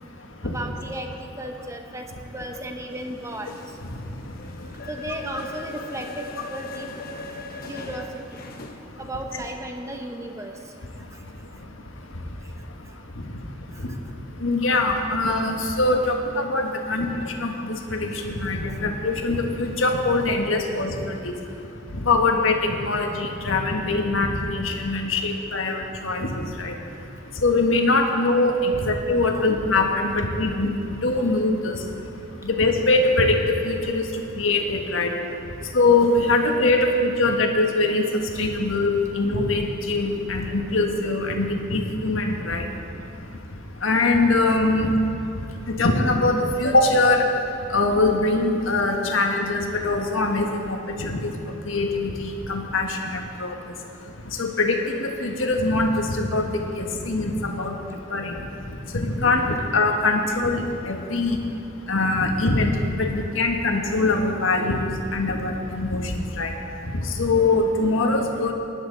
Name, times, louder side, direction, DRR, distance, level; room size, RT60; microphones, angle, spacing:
voice 1, 0.4-3.5 4.9-6.9 7.7-8.4 9.0-10.5 13.7-13.8 29.3-29.4, right 1 dB, 15° right, 3 dB, 1.0 m, -35 dB
sound 1, 2.9-8.7, left 2 dB, 50° left, 1.0 m, -39 dB
voice 2, 14.4-17.1 17.4-21.1 22.0-26.7 27.4-31.8 32.4-34.1 34.3-35.1 35.7-38.0 38.4-38.9 39.1-42.6 43.8-44.9 45.7-47.2 47.7-51.3 51.7-53.5 54.4-57.8 58.1-58.3 58.9-61.4 61.9-62.7 63.0-66.5 66.9-68.5, left 2 dB, 85° left, 2 dB, 1.4 m, -22 dB
19.0 x 11.0 x 3.9 m, 2.8 s
head